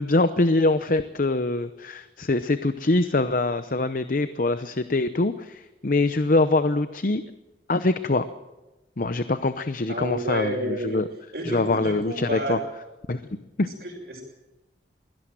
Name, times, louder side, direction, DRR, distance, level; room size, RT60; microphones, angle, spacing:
voice 1, 0.0-7.2 7.7-8.2 9.0-11.1 11.4-12.6 13.1-13.7, left 2 dB, 50° left, 12 dB, 0.8 m, -24 dB
voice 2, 9.9-11.0 11.3-12.6 13.8-14.2, right 1 dB, 60° right, -6 dB, 5.4 m, -30 dB
23.0 x 17.0 x 7.6 m, 1.1 s
head